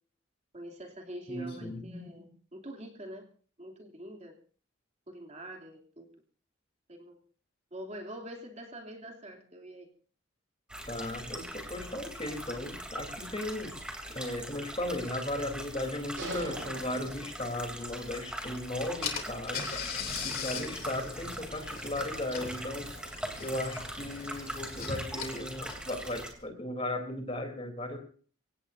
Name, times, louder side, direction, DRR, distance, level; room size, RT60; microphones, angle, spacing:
voice 1, 0.5-3.3 3.6-4.4 5.1-6.1 6.9-7.2 7.7-9.9 11.7-11.8, equal, 35° right, 1 dB, 2.9 m, -44 dB
voice 2, 1.3-1.8 10.9-13.7 14.1-19.7 20.2-22.9 23.4-28.0, left 1 dB, 30° left, 4 dB, 3.4 m, -36 dB
sound 1, 10.7-26.3, right 1 dB, 5° right, 3.0 m, -41 dB
sound 2, 16.2-18.0, right 3 dB, 90° right, 5.9 m, -42 dB
Car / Engine, 18.5-18.6 19.0-26.5, left 5 dB, 50° left, 3.0 m, -40 dB
25.5 x 17.5 x 2.7 m, 0.43 s
head